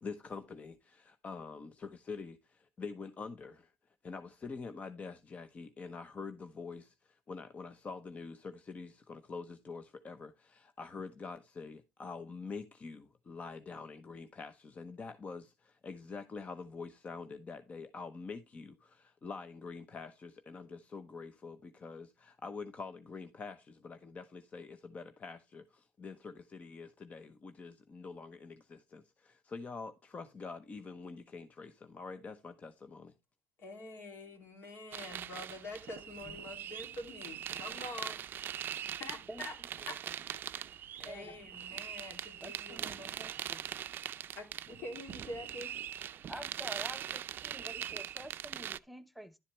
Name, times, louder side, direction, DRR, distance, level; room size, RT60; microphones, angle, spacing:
voice 1, 0.0-3.7 4.0-33.1, left 4 dB, 35° left, 0.8 m, -46 dB
voice 2, 33.6-38.2 39.0-39.5 39.8-40.4 41.0-43.2 44.3-45.7, left 2 dB, 65° left, 3.3 m, -46 dB
sound 1, 34.9-48.8, right 10 dB, 55° right, 0.4 m, -42 dB
voice 3, 41.1-41.4 42.4-43.6 46.3-49.4, equal, ahead, 0.7 m, -48 dB
11.0 x 7.3 x 3.3 m
cardioid pair, 95°, 4 cm